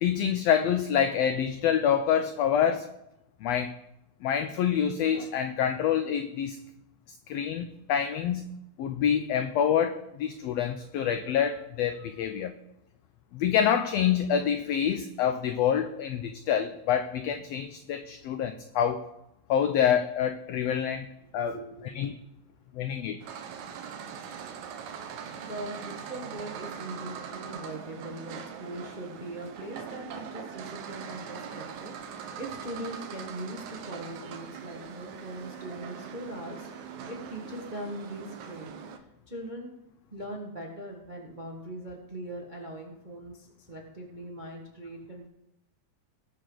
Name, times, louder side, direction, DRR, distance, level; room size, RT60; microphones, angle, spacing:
voice 1, 0.0-2.9 3.4-3.7 4.2-6.6 7.3-8.5 8.8-12.5 13.3-19.1 19.5-21.1 21.3-21.6 21.8-22.1 22.7-23.2, left 8 dB, 85° left, 1.4 m, -27 dB
voice 2, 21.5-22.0 25.4-38.7 39.3-39.7 40.1-45.3, right 1 dB, 40° right, 0.7 m, -41 dB
sound 1, 23.2-39.0, right 7 dB, 75° right, 2.3 m, -41 dB
19.0 x 6.6 x 3.9 m
omnidirectional pair, 3.5 m